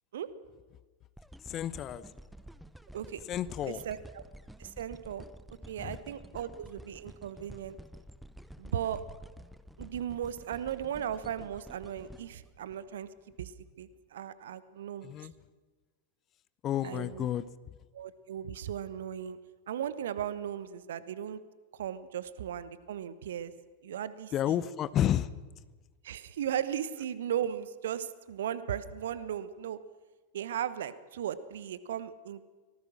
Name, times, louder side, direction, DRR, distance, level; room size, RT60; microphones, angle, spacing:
sound 1, 1.2-13.4 13.9-14.0, equal, ahead, 0.8 m, -50 dB
voice 1, 1.4-2.0 3.3-3.8 5.8-6.0 15.0-15.3 16.6-17.7 24.3-25.3, left 11 dB, 30° left, 17 dB, 0.8 m, -31 dB
voice 2, 3.7-4.2 4.6-5.3 5.7-7.8 8.6-9.0 9.8-13.1 13.4-15.3 16.8-17.3 17.9-19.4 19.7-21.4 21.8-23.5 23.8-24.6 26.0-29.8 30.3-32.4, right 9 dB, 60° right, 15 dB, 1.1 m, -37 dB
25.0 x 19.5 x 6.3 m, 1.3 s
figure-of-eight pair, 90°, 0 cm